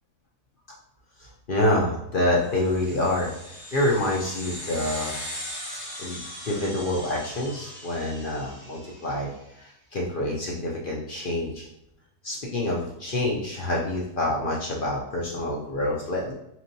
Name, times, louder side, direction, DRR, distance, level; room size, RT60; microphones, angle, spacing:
voice 1, 1.2-3.3 3.7-5.2 6.0-9.3 9.6-11.7 12.2-16.3, left 1 dB, 55° left, -2 dB, 0.6 m, -27 dB
sound 1, 2.5-9.3, equal, 20° left, 0.9 m, -39 dB
4.1 x 3.0 x 2.6 m, 0.82 s
omnidirectional pair, 1.4 m